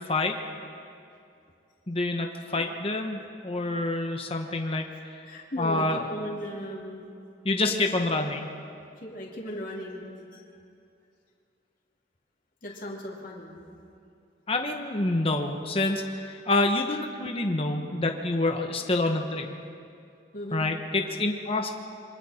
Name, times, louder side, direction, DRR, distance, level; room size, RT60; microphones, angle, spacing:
voice 1, 1.9-4.9 5.6-6.0 7.4-8.5 14.5-19.6 20.5-21.7, left 2 dB, 30° left, 4 dB, 1.1 m, -27 dB
voice 2, 5.3-7.1 7.7-7.8 9.0-10.1 10.3-10.4 12.6-13.5 20.3-20.7, equal, 50° left, -3 dB, 3.0 m, -37 dB
27.0 x 23.5 x 4.4 m, 2.5 s
head